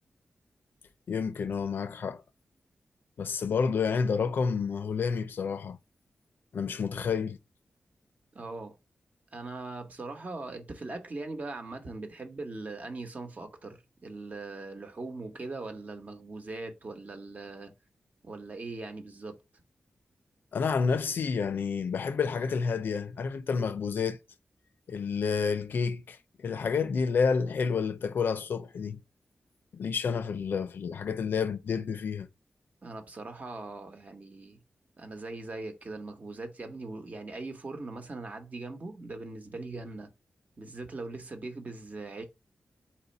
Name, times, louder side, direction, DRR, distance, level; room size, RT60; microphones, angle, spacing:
voice 1, 1.1-2.2 3.2-5.8 6.5-7.4 20.5-24.2 24.9-29.0 29.7-32.3, left 5 dB, 80° left, 0.5 m, -29 dB
voice 2, 8.3-8.8 9.3-17.7 18.2-19.4 32.8-34.6 35.0-40.1 40.6-42.3, right 3 dB, 45° right, 1.1 m, -40 dB
4.3 x 2.7 x 4.0 m
cardioid pair, 60°, 3 cm